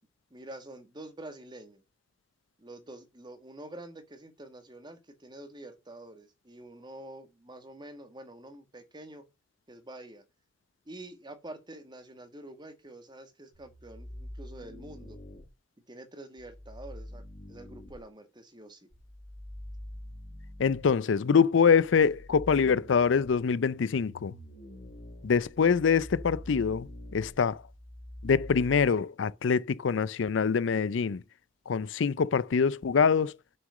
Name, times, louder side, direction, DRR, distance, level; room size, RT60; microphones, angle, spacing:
voice 1, 0.3-1.8 2.6-9.2 9.7-10.2 10.9-15.2 15.9-17.2 17.5-18.9, right 1 dB, 25° right, 1.7 m, -47 dB
sound 1, 13.5-15.5 16.4-18.0 18.9-21.0 21.7-28.9, left 1 dB, 50° left, 3.2 m, -45 dB
voice 2, 20.6-24.3 25.2-26.9 27.1-27.6 28.2-31.2 31.7-33.3, left 6 dB, 70° left, 0.4 m, -24 dB
7.4 x 6.2 x 6.4 m
head